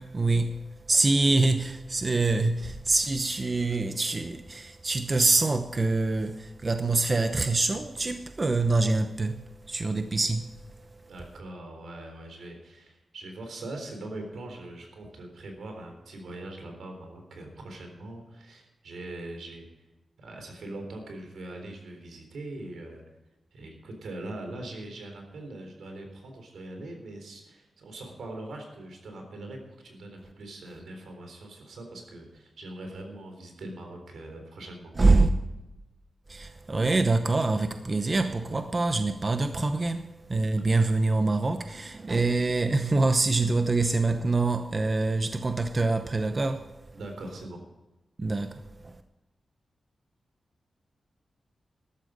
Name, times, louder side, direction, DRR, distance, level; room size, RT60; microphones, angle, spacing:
voice 1, 0.0-10.5 35.0-35.3 36.3-46.7 48.2-49.0, right 3 dB, 35° right, 0.8 m, -25 dB
voice 2, 11.1-19.7 20.2-23.0 23.5-34.9 46.9-47.6, right 2 dB, 85° right, 3.8 m, -42 dB
14.0 x 12.0 x 5.1 m
wide cardioid pair, 90°, 0 cm